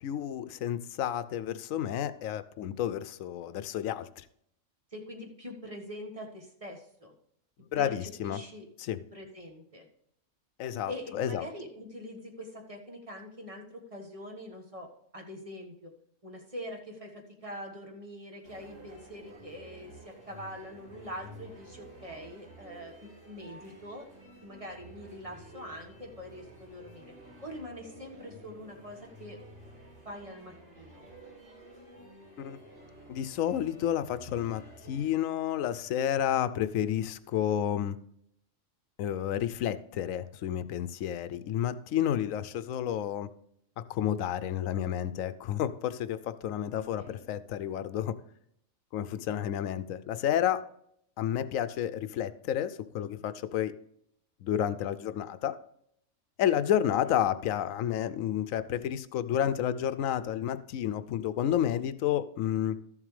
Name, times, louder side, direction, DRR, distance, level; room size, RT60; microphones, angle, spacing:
voice 1, 0.0-4.2 7.7-8.4 8.8-9.0 10.6-11.4 32.4-32.6 33.1-38.0 39.0-43.3 43.8-48.1 48.9-50.6 51.2-53.7 54.4-55.6 56.4-62.8, left 10 dB, 85° left, 13 dB, 1.0 m, -30 dB
voice 2, 4.9-7.1 7.7-8.6 9.1-9.9 10.9-15.9 16.2-24.1 24.4-27.1 27.4-29.4 30.0-31.1 47.0-47.2, equal, 25° right, 1 dB, 1.5 m, -44 dB
sound 1, 18.4-35.1, right 1 dB, 75° right, 3.6 m, -51 dB
13.0 x 7.3 x 3.2 m, 0.71 s
omnidirectional pair, 1.4 m